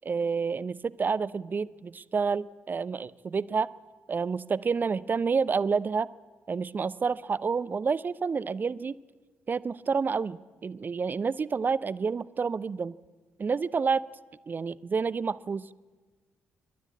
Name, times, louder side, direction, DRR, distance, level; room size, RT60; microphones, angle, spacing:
voice 1, 0.0-3.7 4.1-6.1 6.5-8.9 9.5-12.9 13.4-14.0 14.5-15.7, right 5 dB, 30° right, 19 dB, 0.6 m, -29 dB
27.5 x 12.0 x 8.4 m, 1.3 s
figure-of-eight pair, 40°, 6 cm